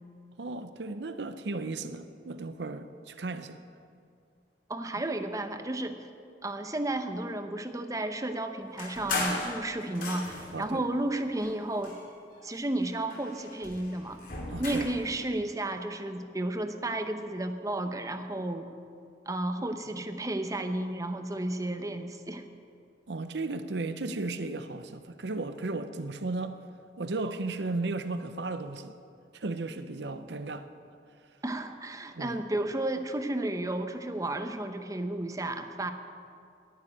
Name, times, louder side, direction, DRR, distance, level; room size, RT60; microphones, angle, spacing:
voice 1, 0.4-3.6 10.5-10.8 14.5-14.9 23.1-26.6 27.0-28.9 29.3-30.7 32.2-32.4, right 3 dB, 80° right, 10 dB, 0.7 m, -35 dB
voice 2, 4.7-6.0 6.4-12.0 12.4-14.2 14.6-18.7 19.3-22.4 31.4-35.9, right 1 dB, 20° right, 7 dB, 0.9 m, -32 dB
sound 1, 8.8-10.6 11.3-12.5 12.8-15.0, left 2 dB, 50° left, 2.5 m, -36 dB
11.0 x 10.5 x 9.8 m, 2.3 s
head